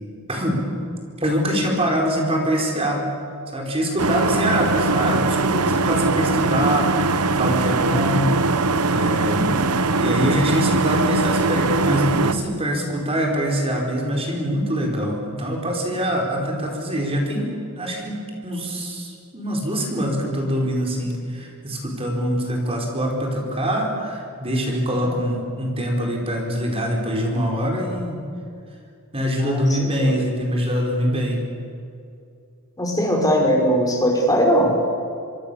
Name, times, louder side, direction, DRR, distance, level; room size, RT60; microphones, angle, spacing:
voice 1, 0.3-0.6 1.2-3.1 3.5-8.3 8.9-9.5 10.0-28.2 29.1-31.4, equal, 25° right, 0 dB, 4.6 m, -24 dB
sound 1, 4.0-12.3, right 3 dB, 85° right, 1.1 m, -21 dB
voice 2, 9.3-9.7 29.4-30.1 32.8-34.9, equal, 15° left, 0 dB, 5.4 m, -20 dB
25.5 x 25.0 x 7.0 m, 2.5 s
head